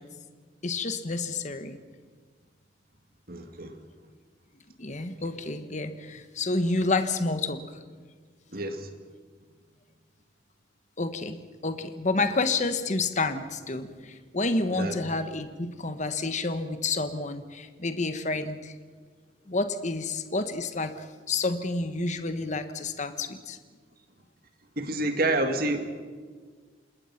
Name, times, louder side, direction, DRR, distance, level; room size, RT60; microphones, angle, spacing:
voice 1, 0.6-1.8 4.8-7.6 11.0-18.7 19.5-20.9 21.3-23.6, left 3 dB, 40° left, 10 dB, 1.3 m, -29 dB
voice 2, 3.3-3.8 8.5-8.9 14.7-15.0 24.8-26.0, right 2 dB, 50° right, 6 dB, 2.1 m, -28 dB
27.0 x 20.5 x 5.9 m, 1.5 s
head